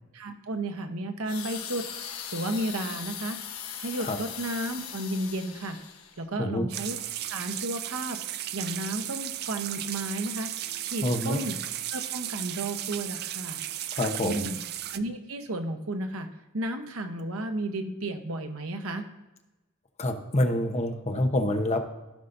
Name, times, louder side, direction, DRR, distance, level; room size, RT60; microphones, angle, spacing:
voice 1, 0.1-1.9 2.3-3.4 3.8-5.8 6.2-7.0 7.3-8.2 8.5-10.5 10.8-11.6 11.9-13.6 14.2-14.6 14.9-16.3 16.5-19.0, right 1 dB, 80° right, 6 dB, 1.0 m, -33 dB
sound 1, 1.2-6.2 6.8-7.0, left 8 dB, 90° left, 1.2 m, -39 dB
sound 2, 6.7-15.0, right 12 dB, 50° right, 0.4 m, -35 dB
voice 2, 11.0-11.4 13.9-14.5 20.0-21.8, left 1 dB, 30° left, 4 dB, 0.9 m, -26 dB
15.0 x 5.5 x 2.6 m, 1.1 s
head